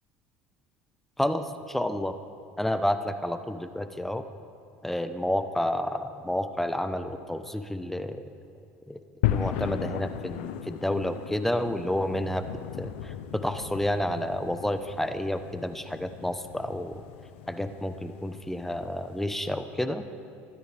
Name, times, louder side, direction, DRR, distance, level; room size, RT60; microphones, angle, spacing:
voice 1, 1.2-2.1 2.6-4.2 4.8-8.2 8.9-9.0 9.3-12.4 12.8-17.0 17.5-20.0, left 1 dB, 5° left, 9 dB, 1.0 m, -30 dB
sound 1, 9.2-19.5, left 12 dB, 80° left, 0.6 m, -36 dB
25.0 x 13.0 x 3.5 m, 2.5 s
hypercardioid pair, 80°, 6 cm